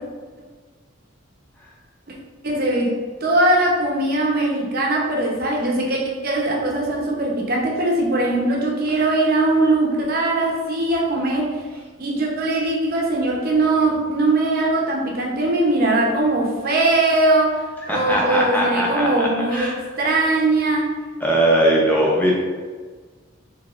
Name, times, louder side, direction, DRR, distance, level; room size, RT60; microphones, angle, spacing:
voice 1, 2.4-11.5 12.0-17.6 17.9-20.9, right 2 dB, 50° right, -2 dB, 0.7 m, -20 dB
voice 2, 17.9-19.8 21.2-22.3, right 1 dB, 10° left, -3 dB, 0.7 m, -20 dB
4.1 x 3.5 x 2.4 m, 1.5 s
head